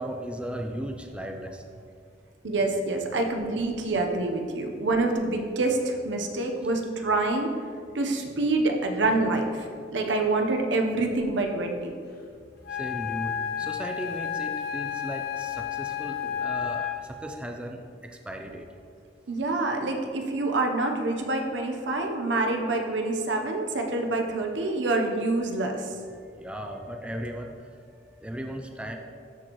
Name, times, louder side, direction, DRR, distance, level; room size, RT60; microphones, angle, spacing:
voice 1, 0.0-1.8 12.7-18.7 26.1-29.0, equal, 5° right, 3 dB, 0.4 m, -37 dB
voice 2, 2.4-7.5 7.9-9.7 9.9-11.9 19.3-25.9, right 2 dB, 75° right, 3 dB, 0.8 m, -26 dB
Wind instrument woodwind instrument, 12.6-17.2, left 9 dB, 60° left, 0.9 m, -31 dB
13.0 x 4.4 x 3.0 m, 2.2 s
head